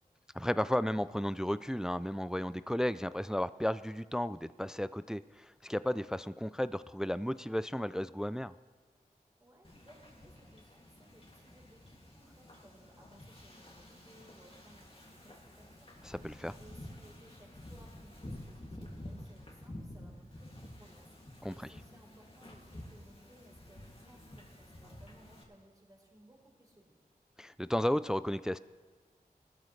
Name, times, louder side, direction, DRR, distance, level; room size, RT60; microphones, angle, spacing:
voice 1, 0.3-8.5 16.0-16.5 21.4-21.5 27.4-28.6, equal, 5° right, 15 dB, 0.3 m, -33 dB
voice 2, 9.1-16.0 16.4-21.1 21.5-27.0, right 1 dB, 25° right, -2 dB, 4.2 m, -61 dB
Wind / Ocean, 9.6-25.4, left 1 dB, 35° left, 2.4 m, -50 dB
18.5 x 13.0 x 3.3 m, 1.4 s
wide cardioid pair, 45°, 16 cm